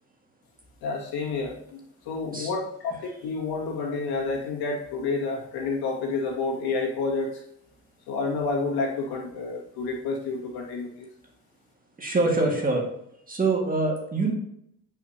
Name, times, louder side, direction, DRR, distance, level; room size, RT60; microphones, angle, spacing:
voice 1, 0.8-7.4 8.1-11.1, left 3 dB, 80° left, -2 dB, 2.2 m, -29 dB
voice 2, 12.0-12.8 13.3-14.3, right 3 dB, 25° right, 0 dB, 1.9 m, -24 dB
9.0 x 5.6 x 2.9 m, 0.76 s
cardioid pair, 95°, 37 cm